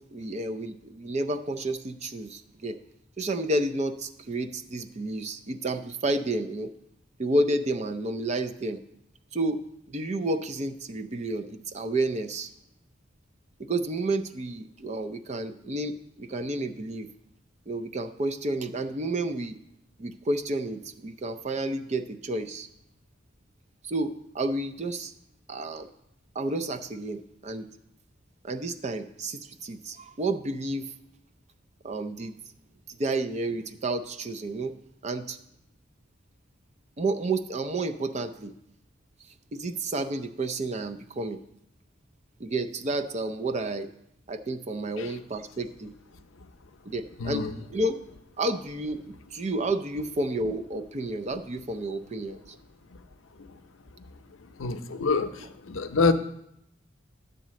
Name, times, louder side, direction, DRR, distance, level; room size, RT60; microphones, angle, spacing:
voice 1, 0.0-2.8 3.2-6.7 7.2-8.8 9.3-9.6 9.9-12.5 13.6-17.1 17.7-19.6 20.0-22.7 23.8-25.1 25.5-25.9 26.3-27.7 28.4-30.9 31.8-32.3 33.0-34.7 35.0-35.4 37.0-38.5 39.5-41.4 42.4-43.9 44.3-45.9 46.9-47.5 47.7-48.0 48.4-52.4 54.9-55.1, right 2 dB, 35° right, 8 dB, 0.5 m, -30 dB
voice 2, 47.2-47.5 54.6-56.1, left 4 dB, 85° left, 9 dB, 0.6 m, -26 dB
9.9 x 4.0 x 7.5 m, 0.78 s
head